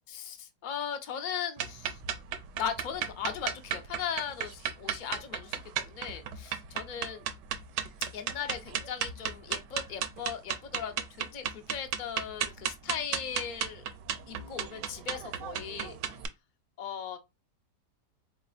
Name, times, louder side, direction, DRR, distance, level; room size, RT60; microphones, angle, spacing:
voice 1, 0.1-2.0 2.6-7.2 8.1-13.8 14.3-16.0 16.8-17.2, left 8 dB, 60° left, 0.5 m, -38 dB
sound 1, 1.6-16.3, right 9 dB, 85° right, 1.2 m, -35 dB
4.0 x 3.3 x 2.3 m
omnidirectional pair, 1.8 m